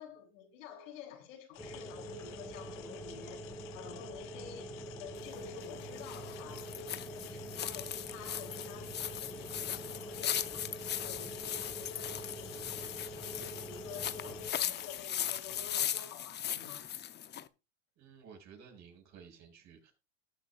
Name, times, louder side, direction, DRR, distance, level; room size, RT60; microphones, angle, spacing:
voice 1, 0.0-10.7 11.0-16.9, left 6 dB, 75° left, 3.7 m, -50 dB
sound 1, 1.5-15.9, left 14 dB, 55° left, 1.5 m, -53 dB
sound 2, 1.6-14.5, right 1 dB, 5° left, 1.9 m, -45 dB
sound 3, 5.1-17.5, left 10 dB, 25° left, 0.7 m, -39 dB
voice 2, 18.0-19.9, right 6 dB, 45° right, 5.9 m, -54 dB
18.5 x 7.7 x 2.6 m
supercardioid pair, 105°, 38 cm